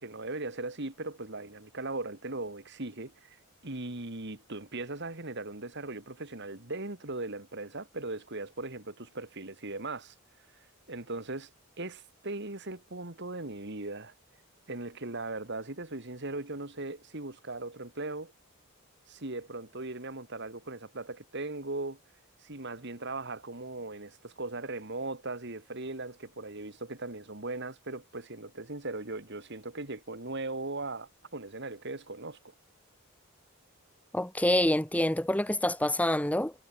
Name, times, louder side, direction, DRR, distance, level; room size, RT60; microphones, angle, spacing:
voice 1, 0.0-3.4 3.6-10.1 10.5-11.5 11.8-14.1 14.7-18.3 19.1-22.0 22.4-32.4, right 2 dB, 50° right, 2.4 m, -39 dB
voice 2, 34.1-36.5, left 1 dB, 5° left, 1.3 m, -26 dB
head